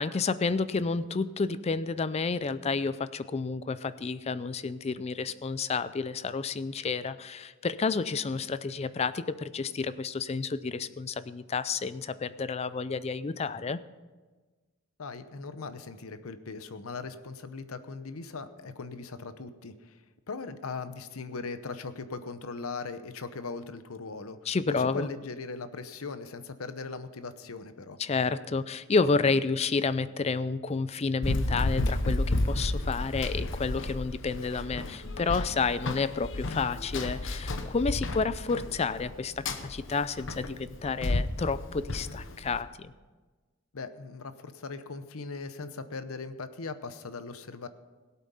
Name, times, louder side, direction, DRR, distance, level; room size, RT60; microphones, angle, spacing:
voice 1, 0.0-13.8 24.5-25.1 28.0-42.9, left 4 dB, 30° left, 15 dB, 0.4 m, -30 dB
voice 2, 15.0-20.0 20.3-24.4 24.7-28.0 43.7-47.7, left 4 dB, 85° left, 12 dB, 0.8 m, -39 dB
Run, 31.2-42.6, left 2 dB, 60° left, 1.0 m, -32 dB
17.5 x 8.4 x 5.5 m, 1.3 s
head